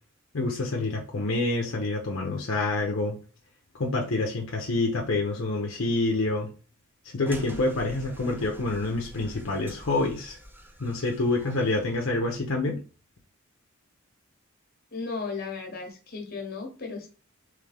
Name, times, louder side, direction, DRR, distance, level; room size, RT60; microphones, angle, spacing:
voice 1, 0.3-3.2 3.7-6.5 7.1-10.4 10.8-12.8, left 2 dB, 70° left, 0 dB, 0.8 m, -27 dB
sound 1, 7.3-12.3, equal, 10° right, 0.6 m, -45 dB
voice 2, 14.9-17.1, left 4 dB, 50° left, 2 dB, 1.1 m, -35 dB
3.6 x 3.2 x 3.4 m, 0.36 s
head